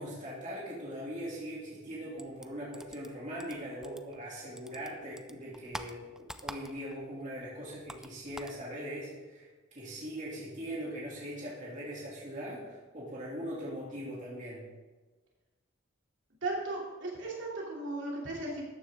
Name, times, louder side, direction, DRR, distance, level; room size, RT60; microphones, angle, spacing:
voice 1, 0.0-6.0 6.4-9.5 9.7-14.6, equal, 35° right, -6 dB, 2.7 m, -40 dB
sound 1, 2.2-4.3 4.6-7.1 7.3-8.6, right 1 dB, 5° right, 0.4 m, -46 dB
voice 2, 16.4-18.6, right 2 dB, 60° right, -4 dB, 3.0 m, -36 dB
13.5 x 9.6 x 3.7 m, 1.2 s
head